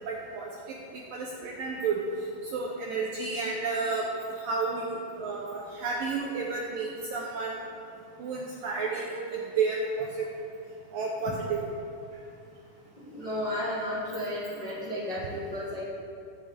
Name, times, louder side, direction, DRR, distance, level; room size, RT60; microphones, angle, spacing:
voice 1, 0.1-0.8 1.1-2.0 2.4-4.1 4.4-7.6 8.2-10.3 10.9-11.6, right 4 dB, 75° right, -1 dB, 2.0 m, -31 dB
voice 2, 13.0-15.8, left 1 dB, 55° left, -9 dB, 1.2 m, -33 dB
19.0 x 8.7 x 3.6 m, 2.6 s
omnidirectional pair, 5.2 m